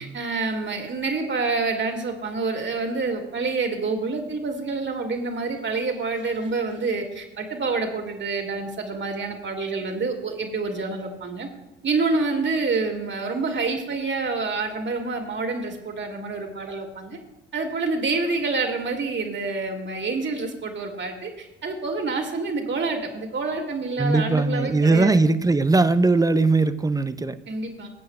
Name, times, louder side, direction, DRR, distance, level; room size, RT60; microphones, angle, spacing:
voice 1, 0.0-11.5 11.8-17.2 17.5-25.1 27.5-27.9, right 3 dB, 35° right, 4 dB, 2.4 m, -27 dB
voice 2, 24.0-27.4, right 3 dB, 10° right, 13 dB, 0.7 m, -20 dB
21.0 x 8.5 x 2.4 m, 0.97 s
figure-of-eight pair, 55°, 34 cm